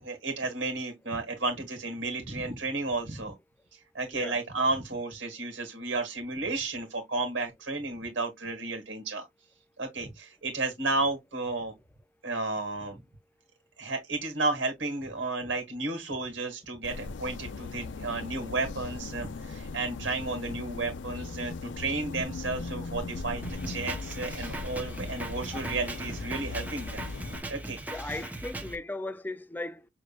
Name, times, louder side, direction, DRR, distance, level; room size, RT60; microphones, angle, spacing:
voice 1, 0.0-3.3 3.9-9.3 9.8-11.7 12.2-13.0 13.8-27.0 27.5-28.2, right 3 dB, 85° right, 1.8 m, -32 dB
sound 1, 16.8-27.4, left 4 dB, 70° left, 0.5 m, -39 dB
Drum kit, 23.4-28.8, right 1 dB, 10° right, 0.8 m, -39 dB
voice 2, 27.9-29.9, left 2 dB, 10° left, 0.4 m, -37 dB
7.1 x 3.1 x 2.3 m
head